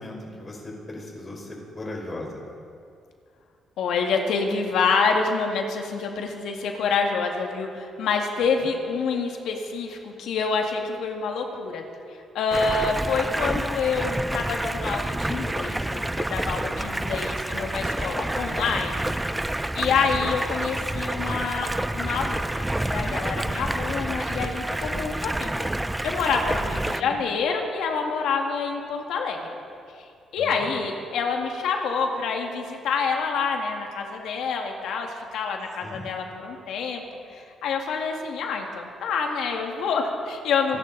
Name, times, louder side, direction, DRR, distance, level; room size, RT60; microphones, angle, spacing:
voice 1, 0.0-2.5 8.6-8.7 16.7-17.0 19.9-20.1 23.6-24.0 27.0-27.2 30.4-30.7 35.8-36.1 40.7-40.8, left 1 dB, 30° left, 0 dB, 4.6 m, -38 dB
voice 2, 3.8-11.8 12.3-19.1 19.7-25.5 26.0-29.4 30.0-30.1 30.3-37.0 37.3-40.8, left 5 dB, 80° left, 2 dB, 2.1 m, -27 dB
Stream, 12.5-27.0, right 1 dB, 10° right, 0.4 m, -28 dB
27.0 x 11.5 x 4.1 m, 2.4 s
cardioid pair, 90°, 0 cm